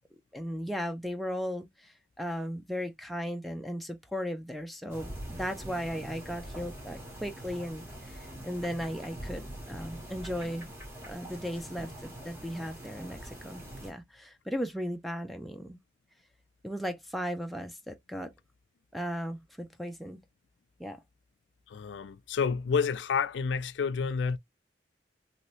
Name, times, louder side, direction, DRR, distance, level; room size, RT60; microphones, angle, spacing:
voice 1, 0.3-10.7 11.1-11.9 12.2-15.8 16.6-18.3 18.9-20.2 20.8-21.0, equal, ahead, 0.3 m, -36 dB
sound 1, 4.9-13.9, right 1 dB, 15° right, 1.4 m, -43 dB
voice 2, 21.7-24.4, left 5 dB, 85° left, 0.4 m, -29 dB
2.9 x 2.8 x 3.0 m
head